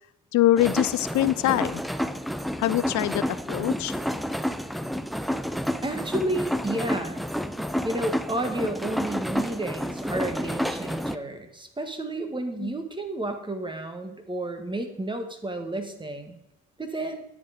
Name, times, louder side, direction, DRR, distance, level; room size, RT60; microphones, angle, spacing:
voice 1, 0.3-1.8 2.6-3.9 12.6-12.7, left 14 dB, 70° left, 16 dB, 0.5 m, -24 dB
sound 1, 0.6-11.2, equal, ahead, 0.5 m, -30 dB
voice 2, 5.8-7.2 7.8-16.4 16.8-17.2, right 1 dB, 15° right, 6 dB, 1.6 m, -31 dB
9.7 x 8.0 x 5.0 m, 0.89 s
cardioid pair, 90°, 30 cm